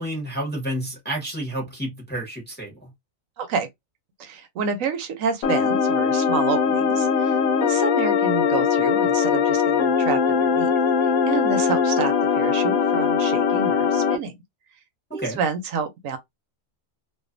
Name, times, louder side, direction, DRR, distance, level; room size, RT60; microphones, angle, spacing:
voice 1, 0.0-2.9 15.2-15.4, right 1 dB, 10° left, 0.7 m, -30 dB
voice 2, 3.4-3.7 4.2-10.7 11.2-14.3 15.1-16.2, right 5 dB, 75° right, 1.0 m, -29 dB
sound 1, 5.4-14.2, left 6 dB, 90° left, 1.0 m, -21 dB
2.5 x 2.4 x 2.5 m
omnidirectional pair, 1.4 m